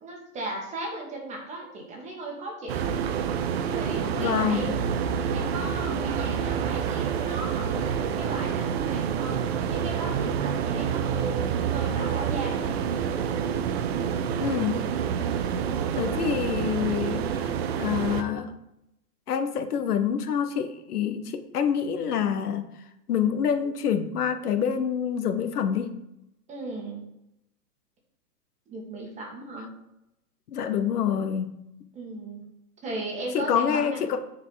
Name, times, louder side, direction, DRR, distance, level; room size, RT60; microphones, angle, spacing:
voice 1, 0.0-2.9 3.7-4.8 5.3-12.9 26.5-27.0 28.7-29.7 31.9-32.4 32.8-34.2, right 2 dB, 15° right, -1 dB, 1.6 m, -37 dB
sound 1, 2.7-18.2, right 7 dB, 45° right, 0.7 m, -28 dB
voice 2, 4.2-4.7 14.4-14.8 15.9-18.5 19.3-22.7 23.1-25.9 30.5-31.5 33.3-34.2, left 8 dB, 75° left, 9 dB, 1.1 m, -26 dB
9.3 x 4.7 x 4.0 m, 0.83 s
hypercardioid pair, 150°, 46 cm